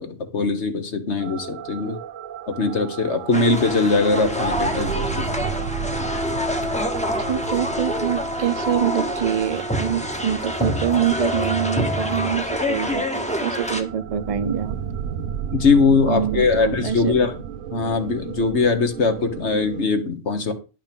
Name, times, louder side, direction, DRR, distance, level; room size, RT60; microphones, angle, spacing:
voice 1, 0.0-2.0 2.5-5.3 15.5-17.3 17.7-20.5, left 4 dB, 65° left, 1.6 m, -21 dB
sound 1, 1.2-19.9, right 8 dB, 90° right, 1.1 m, -34 dB
sound 2, 3.3-13.8, left 1 dB, 5° left, 1.1 m, -26 dB
voice 2, 7.3-14.8 16.1-17.2, right 10 dB, 40° right, 0.5 m, -25 dB
10.5 x 5.7 x 5.3 m
omnidirectional pair, 1.3 m